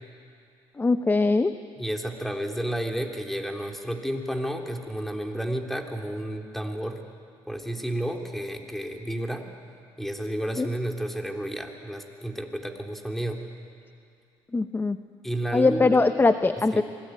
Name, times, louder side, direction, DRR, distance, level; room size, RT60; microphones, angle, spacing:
voice 1, 0.8-1.5 10.6-10.7 14.5-15.0 15.5-16.8, left 3 dB, 20° left, 10 dB, 0.9 m, -21 dB
voice 2, 1.8-7.0 7.5-9.5 10.0-13.5 15.2-16.0 16.7-16.8, right 1 dB, ahead, 2 dB, 3.3 m, -31 dB
25.5 x 19.0 x 9.4 m, 2.4 s
supercardioid pair, 70°, 11 cm